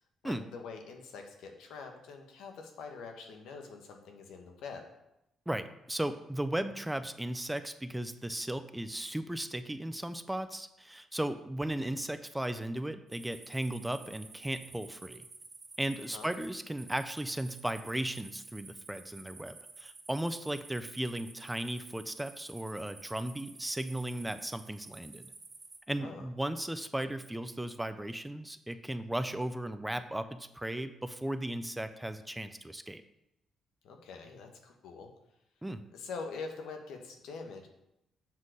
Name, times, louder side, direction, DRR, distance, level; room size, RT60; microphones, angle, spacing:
voice 1, 0.2-4.8 16.1-16.3 26.0-26.2 33.8-35.1 35.9-37.7, left 4 dB, 85° left, 3 dB, 1.3 m, -44 dB
voice 2, 5.5-15.2 15.8-25.3 25.9-33.0 35.6-35.8, right 1 dB, 10° right, 11 dB, 0.5 m, -36 dB
sound 1, 13.1-25.8, right 4 dB, 35° right, 2.0 m, -52 dB
7.5 x 4.0 x 6.3 m, 0.84 s
cardioid pair, 90°, 0 cm